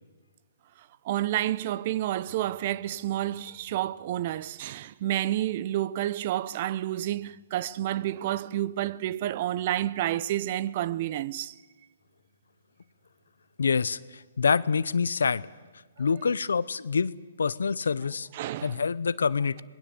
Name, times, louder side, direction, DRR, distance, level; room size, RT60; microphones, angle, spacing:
voice 1, 1.0-11.5 16.0-16.1 18.3-18.8, right 13 dB, 45° right, 0.7 m, -30 dB
voice 2, 13.6-15.5 16.0-18.3 18.6-19.6, left 5 dB, 80° left, 0.8 m, -26 dB
26.5 x 19.5 x 7.9 m
hypercardioid pair, 140°, 0 cm